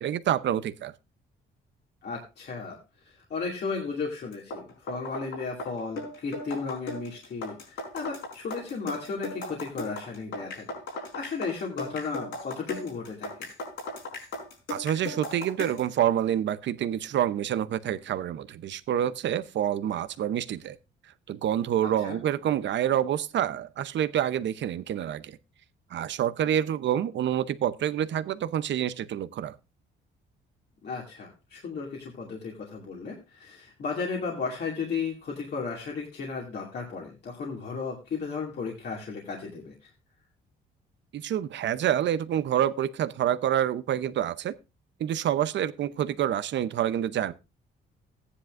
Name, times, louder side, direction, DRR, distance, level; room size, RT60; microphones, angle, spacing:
voice 1, 0.0-0.9 14.7-20.8 21.3-25.4 25.9-29.5 41.1-44.5 45.0-47.3, right 10 dB, 65° right, 0.8 m, -27 dB
voice 2, 2.0-2.8 3.0-13.3 22.0-22.2 30.8-39.9, left 4 dB, 55° left, 2.4 m, -35 dB
sound 1, 4.3-15.9, left 2 dB, 75° left, 5.0 m, -37 dB
14.5 x 9.9 x 2.5 m
cardioid pair, 90°, 20 cm